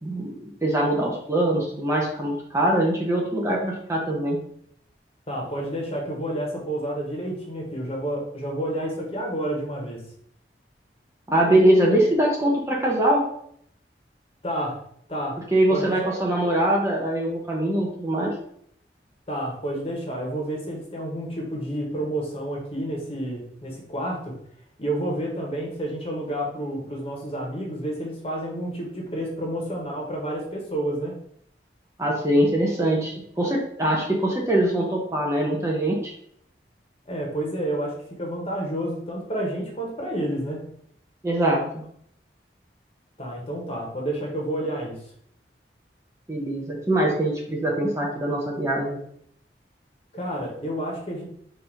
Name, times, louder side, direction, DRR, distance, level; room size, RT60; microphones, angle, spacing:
voice 1, 0.0-4.4 11.3-13.2 15.5-18.4 32.0-36.1 41.2-41.6 46.3-49.0, right 1 dB, 15° right, -2 dB, 0.6 m, -23 dB
voice 2, 5.3-10.0 14.4-14.8 15.1-15.4 15.7-16.1 19.3-24.4 24.8-31.2 37.1-40.6 43.2-45.0 50.1-51.2, right 1 dB, 35° left, -1 dB, 1.1 m, -30 dB
3.9 x 2.7 x 4.5 m, 0.67 s
head